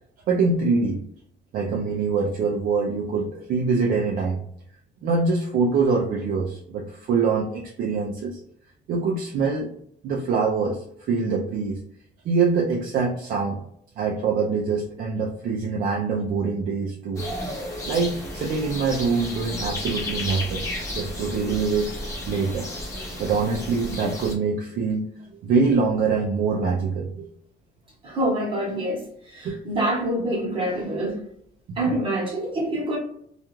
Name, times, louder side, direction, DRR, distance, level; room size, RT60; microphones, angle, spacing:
voice 1, 0.3-1.0 1.5-4.4 5.0-8.4 8.9-9.7 10.0-11.8 12.2-13.6 14.0-17.3 17.9-20.7 20.9-21.9 22.3-22.7 23.2-25.1 25.4-27.3 29.4-29.6, right 4 dB, 55° right, -1 dB, 0.4 m, -24 dB
sound 1, 17.1-24.3, left 1 dB, 15° left, 0.7 m, -32 dB
voice 2, 28.0-29.0 29.3-31.2 31.8-33.0, right 1 dB, 30° right, -3 dB, 0.9 m, -26 dB
2.3 x 2.3 x 3.0 m, 0.70 s
cardioid pair, 175°, 18 cm